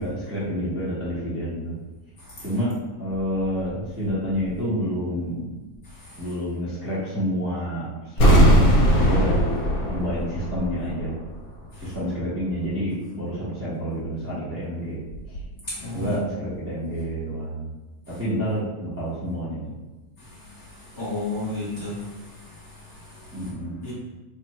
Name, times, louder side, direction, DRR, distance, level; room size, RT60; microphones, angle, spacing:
voice 1, 0.0-1.7 2.4-2.7 3.0-5.5 6.2-7.9 8.1-8.7 9.0-9.5 9.9-11.1 11.8-15.0 15.9-17.7 18.1-19.6 23.3-23.8, equal, 15° right, -9 dB, 0.5 m, -28 dB
sound 1, 8.2-11.1 11.3-11.4, equal, 65° left, 1.1 m, -18 dB
voice 2, 15.7-16.3 20.9-22.0 23.8-23.9, left 2 dB, 45° left, -8 dB, 1.3 m, -30 dB
3.3 x 2.3 x 4.1 m, 1.1 s
omnidirectional pair, 2.0 m